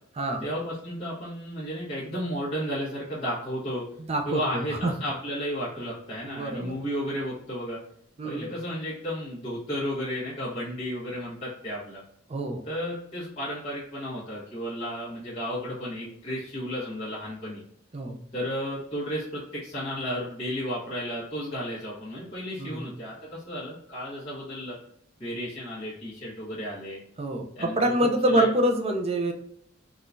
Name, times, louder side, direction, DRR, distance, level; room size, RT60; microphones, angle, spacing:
voice 1, 0.4-3.9 4.2-7.8 8.2-12.0 12.6-17.6 18.3-24.8 25.2-27.0 27.5-27.8 28.3-28.5, equal, 30° left, -11 dB, 1.0 m, -33 dB
voice 2, 4.0-4.9 6.3-6.8 8.2-8.5 12.3-12.6 17.9-18.2 22.6-22.8 27.2-29.3, right 1 dB, 30° right, 4 dB, 0.4 m, -26 dB
3.7 x 2.3 x 2.5 m, 0.71 s
head